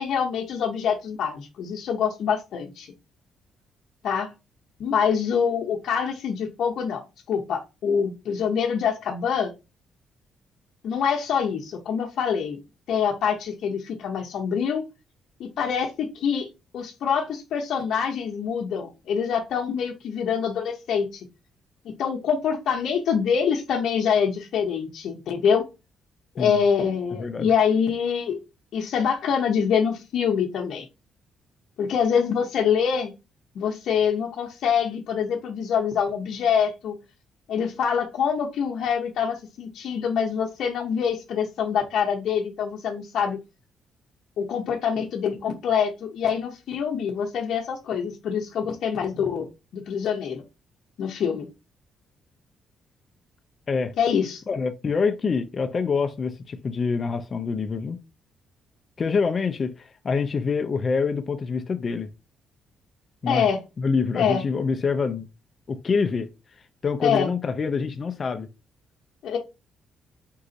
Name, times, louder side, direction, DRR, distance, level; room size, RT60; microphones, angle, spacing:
voice 1, 0.0-2.9 4.0-4.3 4.8-7.0 7.3-9.5 10.8-12.6 12.9-14.8 15.4-16.5 16.7-21.3 22.0-25.6 26.3-28.4 28.7-30.9 31.8-33.1 33.5-36.9 37.5-43.4 44.4-50.4 51.0-51.5 54.0-54.4 63.3-63.6 64.1-64.4 67.0-67.3 69.2-69.4, left 7 dB, 70° left, 0.8 m, -25 dB
voice 2, 27.1-27.5 53.7-53.9 54.5-58.0 59.0-62.1 63.2-63.5 63.8-65.3 65.7-66.3 66.8-68.5, left 5 dB, 40° left, 0.5 m, -26 dB
4.6 x 2.5 x 4.0 m
cardioid pair, 90°, 0 cm